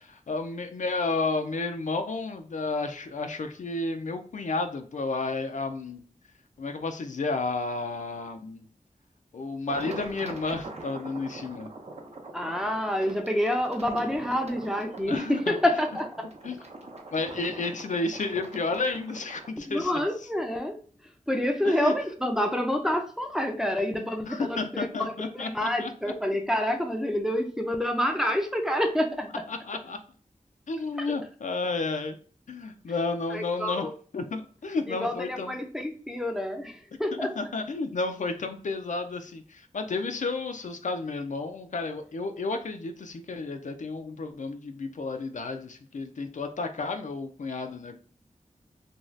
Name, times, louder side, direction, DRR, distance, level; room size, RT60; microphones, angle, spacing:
voice 1, 0.3-6.0 6.6-8.7 9.3-11.7 15.1-15.6 16.4-16.6 17.1-20.0 21.6-21.9 24.3-25.9 26.3-26.4 29.5-30.0 30.7-32.2 32.5-33.9 34.1-35.6 37.4-48.0, left 3 dB, 65° left, 0.4 m, -31 dB
sound 1, 9.7-19.5, right 2 dB, 50° right, 0.6 m, -43 dB
voice 2, 12.3-16.3 19.6-29.4 31.0-31.1 33.3-33.9 34.9-37.4, left 1 dB, 5° right, 0.4 m, -28 dB
2.6 x 2.3 x 3.1 m
wide cardioid pair, 65°, 14 cm